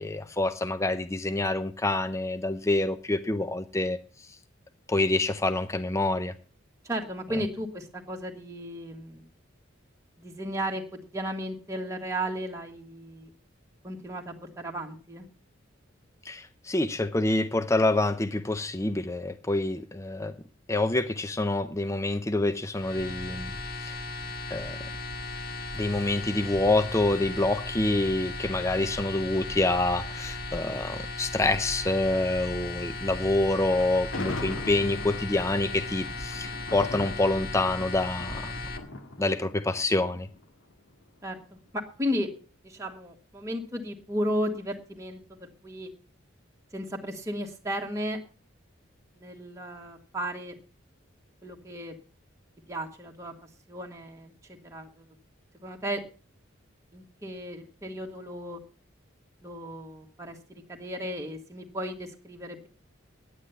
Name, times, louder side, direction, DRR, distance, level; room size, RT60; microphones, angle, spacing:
voice 1, 0.0-4.3 4.9-6.3 16.2-20.3 20.7-23.5 23.8-24.0 24.5-24.8 25.7-38.5 39.2-40.3, left 2 dB, 15° left, 0.5 m, -27 dB
voice 2, 6.8-9.2 10.2-10.8 11.1-13.3 13.8-15.2 41.2-42.3 42.6-45.9 46.7-48.2 49.2-50.6 51.4-51.9 52.7-53.3 53.7-55.0 55.6-56.0 56.9-58.6 59.4-62.7, equal, 15° right, 1.6 m, -34 dB
sound 1, 22.7-38.8, left 2 dB, 50° left, 1.9 m, -37 dB
Thunder, 33.7-40.9, left 2 dB, 85° left, 1.8 m, -41 dB
10.0 x 9.7 x 6.9 m
head